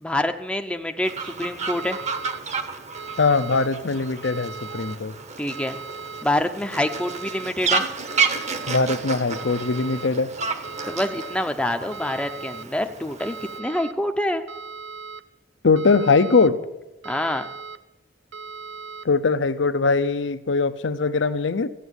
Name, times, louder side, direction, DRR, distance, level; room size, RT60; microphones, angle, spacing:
voice 1, 0.0-2.0 5.4-5.8 6.2-7.8 10.9-14.5 17.0-17.5, left 1 dB, 5° left, 5 dB, 0.6 m, -26 dB
Fowl, 1.0-13.6, right 5 dB, 35° right, 1.0 m, -31 dB
sound 1, 1.7-2.4 3.0-3.7 4.2-5.0 5.5-6.2 6.8-7.5 8.1-8.8 9.4-10.1 10.6-11.4 11.9-12.6 13.2-13.9 14.5-15.2 15.8-16.5 17.0-17.8 18.3-19.1, right 5 dB, 65° right, 0.7 m, -38 dB
voice 2, 3.2-5.1 8.7-10.3 15.6-16.6 19.0-21.7, left 4 dB, 70° left, 13 dB, 0.7 m, -21 dB
14.0 x 8.2 x 8.1 m, 0.98 s
head